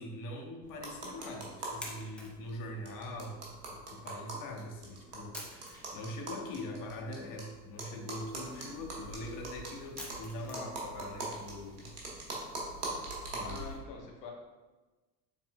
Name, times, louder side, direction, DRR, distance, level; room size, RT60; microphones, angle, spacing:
voice 1, 0.0-11.9 13.3-13.6 14.0-14.1, left 1 dB, 40° left, 1 dB, 1.0 m, -43 dB
sound 1, 0.6-13.7, equal, ahead, 0.3 m, -53 dB
sound 2, 0.8-1.9 2.2-2.3 2.5-2.6 2.9-7.4 7.8-13.8, right 2 dB, 65° right, 1.4 m, -42 dB
voice 2, 13.4-14.3, left 4 dB, 70° left, 0 dB, 1.1 m, -46 dB
6.6 x 3.5 x 2.2 m, 1.2 s
figure-of-eight pair, 70°, 50 cm